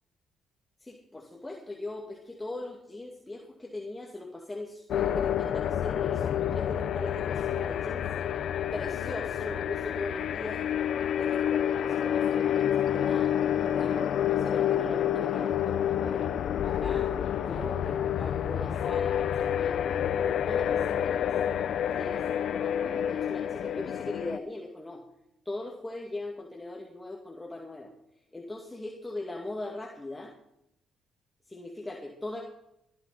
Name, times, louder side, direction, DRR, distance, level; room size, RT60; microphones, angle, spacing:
voice 1, 0.8-8.1 8.7-10.6 11.2-14.1 14.4-16.3 16.6-21.3 21.9-25.0 25.5-27.9 28.3-30.3 31.5-32.4, left 2 dB, 15° left, -1 dB, 2.3 m, -40 dB
sound 1, 4.9-24.4, left 9 dB, 70° left, 0.6 m, -28 dB
20.0 x 11.5 x 4.2 m, 0.80 s
cardioid pair, 90°, 0 cm